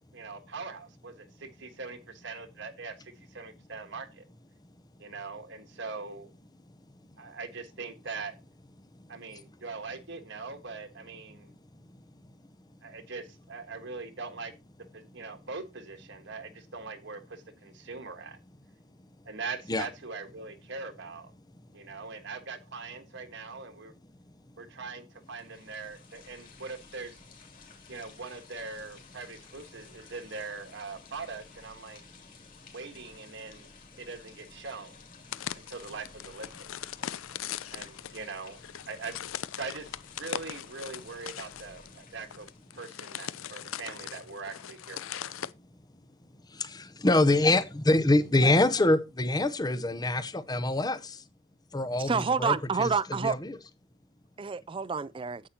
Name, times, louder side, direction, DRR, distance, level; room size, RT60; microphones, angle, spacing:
voice 1, 0.1-4.2 5.0-6.3 7.2-8.3 9.1-11.5 12.8-14.5 14.9-18.4 19.2-21.3 21.7-23.9 24.6-27.2 27.9-32.0 32.7-33.7 34.0-35.0 35.5-36.7 37.7-38.6 38.9-39.2 39.5-45.4, right 4 dB, 55° right, 1.5 m, -41 dB
sound 1, 25.2-42.8, left 5 dB, 40° left, 3.0 m, -54 dB
sound 2, 35.3-45.5, left 10 dB, 70° left, 0.5 m, -40 dB
voice 2, 46.5-51.2 51.7-53.6, left 2 dB, 20° left, 0.7 m, -25 dB
voice 3, 52.0-53.4 54.4-55.4, right 5 dB, 25° right, 0.4 m, -28 dB
9.9 x 8.2 x 2.9 m
head